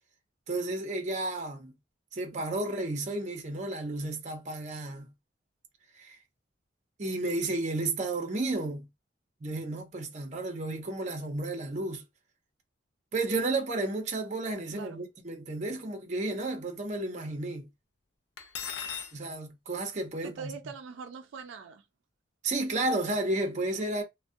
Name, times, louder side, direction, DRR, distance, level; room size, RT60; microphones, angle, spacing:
voice 1, 0.5-1.7 2.1-5.1 5.9-6.2 7.0-8.9 9.4-12.0 13.1-17.7 19.1-20.6 22.4-24.0, right 2 dB, 40° right, 0.6 m, -32 dB
Cutlery silverware, 18.4-19.1, left 7 dB, 65° left, 0.4 m, -37 dB
voice 2, 20.2-21.8, right 6 dB, 85° right, 0.4 m, -43 dB
2.3 x 2.1 x 2.5 m
head